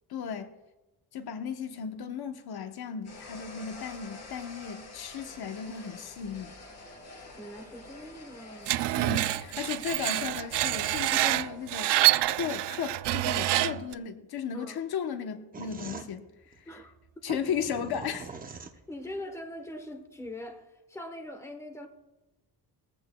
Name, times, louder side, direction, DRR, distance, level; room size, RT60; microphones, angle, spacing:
voice 1, 0.1-0.5 1.1-6.5 8.9-16.3 17.2-18.3, left 7 dB, 65° left, 7 dB, 0.9 m, -35 dB
sound 1, 3.0-11.8, left 2 dB, 40° left, 3.3 m, -48 dB
voice 2, 7.4-8.9 11.2-11.3 14.5-14.8 16.7-16.9 17.3-17.4 18.9-21.9, left 1 dB, 5° left, 5 dB, 1.0 m, -42 dB
Screech, 8.7-13.9, right 15 dB, 85° right, 0.5 m, -27 dB
sound 2, 15.5-19.2, right 4 dB, 20° right, 0.7 m, -44 dB
19.5 x 15.0 x 2.2 m, 1.1 s
wide cardioid pair, 170°, 40 cm